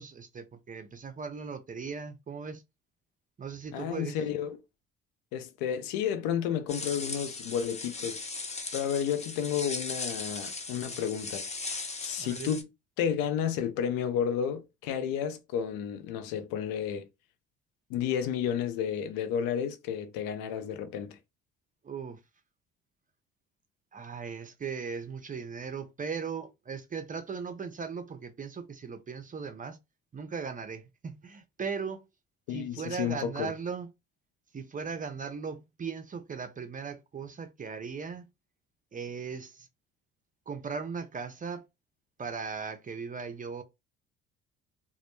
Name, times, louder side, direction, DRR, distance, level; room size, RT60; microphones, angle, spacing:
voice 1, 0.0-2.6 3.4-4.2 12.2-12.6 21.8-22.2 23.9-29.8 30.1-32.1 32.5-33.9 34.5-38.3 38.9-39.7 40.5-41.6 42.2-43.6, right 5 dB, 25° right, 0.5 m, -38 dB
voice 2, 3.7-4.6 5.3-8.2 8.7-11.4 12.0-12.7 13.0-17.1 17.9-21.2 32.5-33.5, left 8 dB, 70° left, 0.6 m, -31 dB
sound 1, 6.7-12.6, left 3 dB, 20° left, 0.6 m, -38 dB
2.1 x 2.0 x 3.0 m
hypercardioid pair, 55°, 36 cm